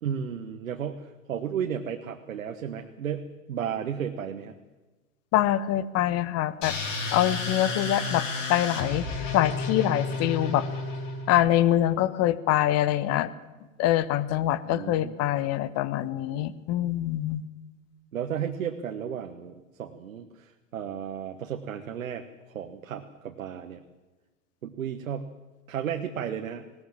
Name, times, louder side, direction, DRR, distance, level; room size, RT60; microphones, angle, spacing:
voice 1, 0.0-4.5 14.6-15.2 18.1-23.8 24.6-25.3 25.7-26.6, right 8 dB, 75° right, 5 dB, 1.5 m, -34 dB
voice 2, 5.3-6.7 7.1-9.0 9.3-10.7 11.3-13.3 13.8-17.4, left 13 dB, 35° left, 17 dB, 1.2 m, -24 dB
sound 1, 6.6-11.4, left 3 dB, 65° left, 5.5 m, -31 dB
20.0 x 18.0 x 7.5 m, 1.2 s
hypercardioid pair, 100°, 41 cm